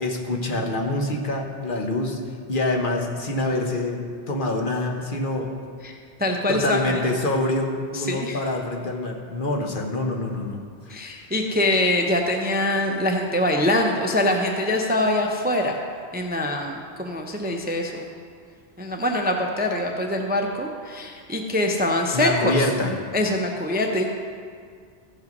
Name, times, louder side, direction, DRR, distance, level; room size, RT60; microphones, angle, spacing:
voice 1, 0.0-2.2 2.5-4.0 4.3-5.5 6.5-10.6 10.9-11.0 22.1-23.0, left 2 dB, 50° left, 1 dB, 1.2 m, -25 dB
voice 2, 6.2-7.0 7.9-8.4 10.9-15.8 16.1-18.1 18.8-22.7 23.1-24.1, left 1 dB, 10° right, 2 dB, 0.5 m, -24 dB
14.0 x 5.5 x 5.3 m, 2.1 s
omnidirectional pair, 1.1 m